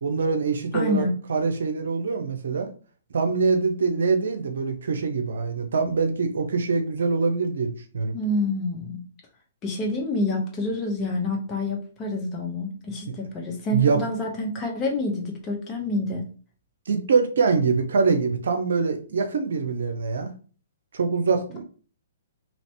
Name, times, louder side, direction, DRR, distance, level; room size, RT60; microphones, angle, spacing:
voice 1, 0.0-2.7 3.1-8.1 13.7-14.0 16.9-20.3 20.9-21.6, right 4 dB, 70° right, 6 dB, 0.6 m, -24 dB
voice 2, 0.7-1.1 8.1-9.0 9.6-16.3, left 2 dB, 25° left, 0 dB, 0.9 m, -27 dB
2.8 x 2.7 x 3.3 m, 0.39 s
figure-of-eight pair, 125°, 0 cm